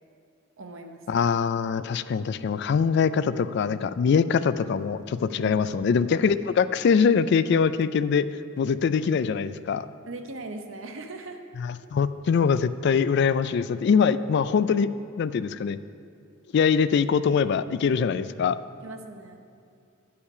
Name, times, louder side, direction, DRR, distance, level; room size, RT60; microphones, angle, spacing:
voice 1, 0.6-1.1 5.4-5.8 10.1-11.4 18.8-19.5, right 2 dB, 70° right, 5 dB, 0.9 m, -39 dB
voice 2, 1.1-8.3 8.6-9.9 11.6-14.9 15.2-15.8 16.5-18.6, left 6 dB, 55° left, 14 dB, 0.3 m, -23 dB
11.0 x 5.7 x 6.6 m, 2.5 s
head